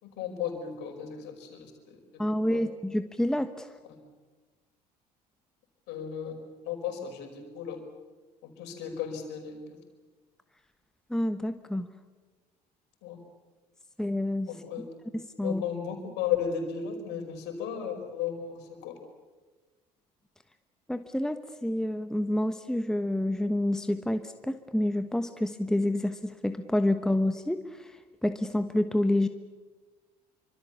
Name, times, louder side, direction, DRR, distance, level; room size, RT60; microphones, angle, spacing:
voice 1, 0.0-2.0 2.3-2.6 3.8-4.0 5.9-7.8 8.4-9.8 13.0-13.2 14.5-14.9 15.4-19.0, left 8 dB, 55° left, 5 dB, 5.1 m, -35 dB
voice 2, 2.2-3.7 11.1-11.9 14.0-14.5 15.4-15.6 20.9-27.6 28.2-29.3, left 1 dB, 5° left, 9 dB, 1.2 m, -28 dB
27.0 x 25.0 x 7.1 m, 1.3 s
figure-of-eight pair, 60°, 21 cm